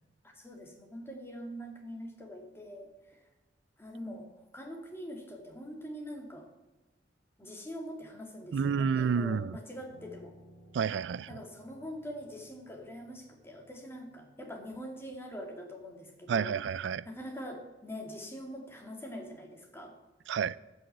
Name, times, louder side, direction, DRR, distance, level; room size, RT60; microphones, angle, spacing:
voice 1, 0.2-3.2 3.8-6.5 7.4-10.3 11.3-16.5 17.0-19.9, equal, 15° left, 2 dB, 2.4 m, -44 dB
voice 2, 8.5-9.5 10.7-11.3 16.3-17.1 20.3-20.6, right 6 dB, 80° right, 19 dB, 0.4 m, -29 dB
Piano, 9.9-15.2, equal, 70° left, 2.5 m, -59 dB
14.0 x 6.3 x 8.0 m, 1.1 s
head